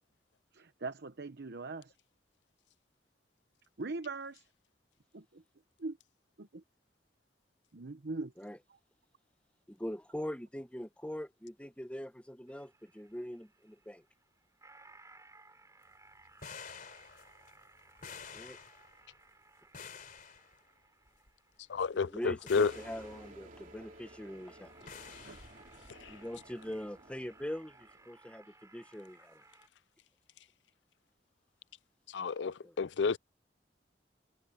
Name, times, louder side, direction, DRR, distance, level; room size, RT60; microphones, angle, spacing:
voice 1, 0.5-1.9 3.8-4.4 5.1-5.4 5.8-6.0 6.4-6.6 7.7-8.3 25.2-25.4, right 3 dB, 65° right, 0.9 m, -41 dB
voice 2, 9.7-14.0 18.3-18.6 21.9-24.7 25.0-25.2 26.1-29.4 32.6-32.7, equal, 5° left, 1.2 m, -42 dB
sound 1, 12.5-29.7, right 3 dB, 20° right, 6.7 m, -61 dB
sound 2, 16.1-19.1 19.7-20.6 21.1-21.3 22.0-22.2 22.5-23.3 24.9-25.7, left 6 dB, 50° left, 3.6 m, -50 dB
voice 3, 21.7-22.7 25.9-26.2 32.1-33.2, left 5 dB, 70° left, 0.5 m, -31 dB
sound 3, 22.6-28.2, right 1 dB, 50° right, 3.5 m, -55 dB
head